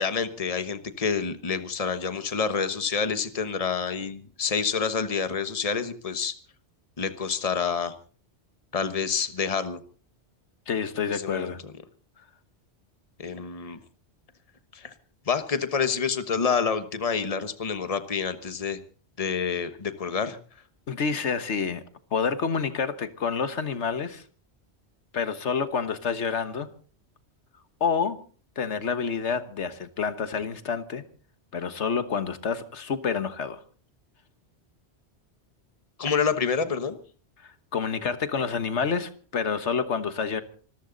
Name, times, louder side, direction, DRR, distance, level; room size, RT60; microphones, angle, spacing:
voice 1, 0.0-6.3 7.0-7.9 8.7-9.8 11.1-11.5 13.2-13.8 14.7-14.9 15.3-18.8 19.2-20.4 36.0-37.0, left 6 dB, 35° left, 1.3 m, -28 dB
voice 2, 10.7-11.6 20.9-21.8 22.1-24.2 25.1-26.7 27.8-28.2 28.6-31.0 31.5-33.6 37.4-40.4, left 6 dB, 80° left, 1.6 m, -28 dB
25.5 x 14.0 x 4.0 m
omnidirectional pair, 1.2 m